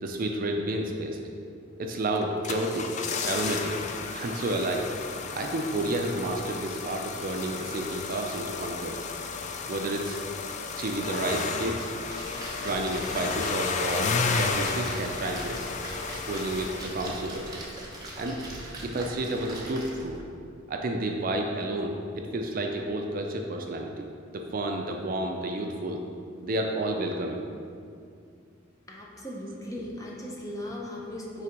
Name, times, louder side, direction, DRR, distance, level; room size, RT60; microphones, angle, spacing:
voice 1, 0.0-1.2 1.8-2.9 3.3-3.7 4.1-4.9 5.3-9.0 9.7-10.2 10.8-11.9 12.6-15.7 16.3-17.5 18.2-18.4 18.8-20.2 20.7-24.1 24.3-26.0 26.4-27.5, right 1 dB, 45° right, 2 dB, 0.4 m, -31 dB
sound 1, 2.2-17.7 17.9-18.0, left 4 dB, 35° left, 0.3 m, -33 dB
Splash splatter, 12.0-20.2, right 1 dB, 20° right, 0.9 m, -41 dB
voice 2, 28.9-31.4, equal, 15° left, -3 dB, 0.7 m, -37 dB
5.7 x 3.4 x 5.2 m, 2.3 s
head